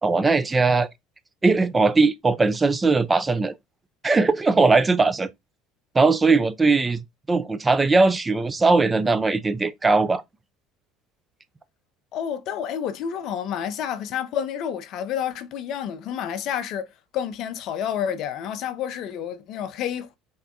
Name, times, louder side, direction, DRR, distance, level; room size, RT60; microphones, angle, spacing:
voice 1, 0.0-0.9 1.4-3.5 4.0-5.3 5.9-10.2, right 3 dB, 20° right, 0.4 m, -20 dB
voice 2, 12.1-20.2, left 9 dB, 55° left, 0.4 m, -29 dB
3.5 x 2.1 x 2.7 m
hypercardioid pair, 65°, 0 cm